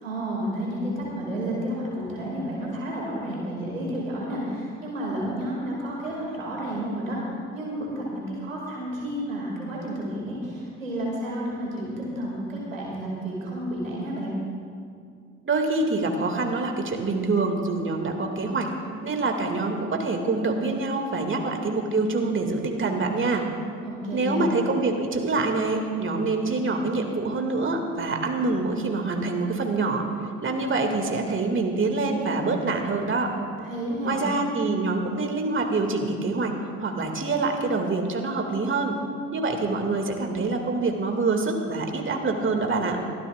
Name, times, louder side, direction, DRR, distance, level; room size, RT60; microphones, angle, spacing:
voice 1, 0.0-7.2 7.5-14.3 23.8-24.5 33.6-34.2, equal, 90° right, -3 dB, 2.1 m, -31 dB
voice 2, 15.4-18.7 19.0-23.4 24.1-30.0 30.4-33.3 34.0-36.5 36.8-39.0 39.3-43.0, right 3 dB, 30° right, 3 dB, 2.0 m, -25 dB
23.0 x 15.0 x 2.3 m, 2.2 s
figure-of-eight pair, 45°, 38 cm